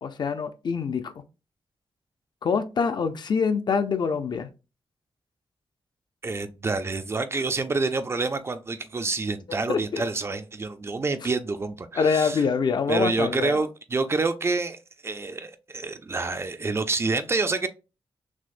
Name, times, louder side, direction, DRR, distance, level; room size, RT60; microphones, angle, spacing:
voice 1, 0.0-1.1 2.4-4.5 9.5-10.0 12.0-13.6, left 5 dB, 50° left, 0.4 m, -25 dB
voice 2, 6.2-12.4 12.9-17.7, right 3 dB, 25° right, 0.3 m, -28 dB
6.0 x 2.1 x 2.5 m
wide cardioid pair, 170°, 10 cm